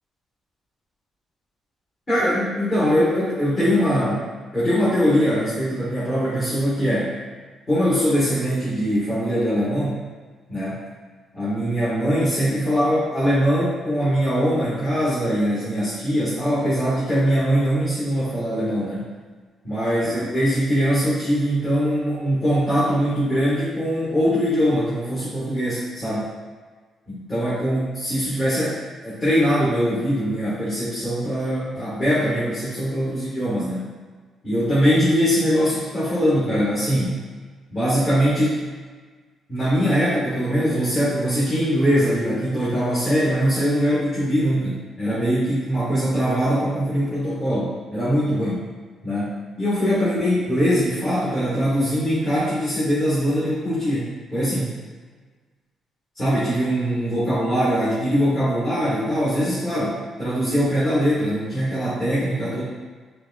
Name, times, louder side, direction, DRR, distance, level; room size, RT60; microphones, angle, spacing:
voice 1, 2.1-4.3 4.5-7.1 7.7-10.0 10.5-10.8 11.3-19.1 19.6-26.3 27.1-28.8 29.0-33.9 34.4-37.2 37.7-38.6 39.5-48.7 49.0-54.7 56.1-62.6, equal, 30° left, -10 dB, 1.4 m, -22 dB
5.1 x 2.3 x 2.4 m, 1.4 s
cardioid pair, 90°, 0 cm